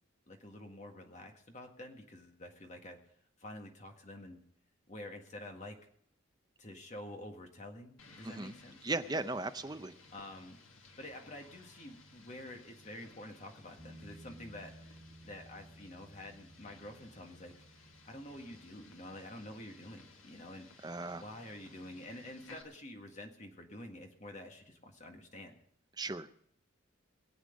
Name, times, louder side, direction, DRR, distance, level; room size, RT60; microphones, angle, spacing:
voice 1, 0.3-4.4 4.9-5.8 6.6-8.8 10.1-10.6 11.0-15.0 15.2-20.9 21.2-25.6, left 1 dB, 35° left, 3 dB, 1.7 m, -48 dB
sound 1, 8.0-22.6, left 3 dB, 75° left, 1.7 m, -59 dB
voice 2, 8.2-8.5 8.8-9.9 20.8-21.2 26.0-26.3, right 2 dB, 20° right, 9 dB, 0.6 m, -37 dB
sound 2, 13.8-21.4 24.4-24.5, right 1 dB, 5° left, 2.2 m, -58 dB
22.0 x 8.1 x 5.2 m, 0.69 s
head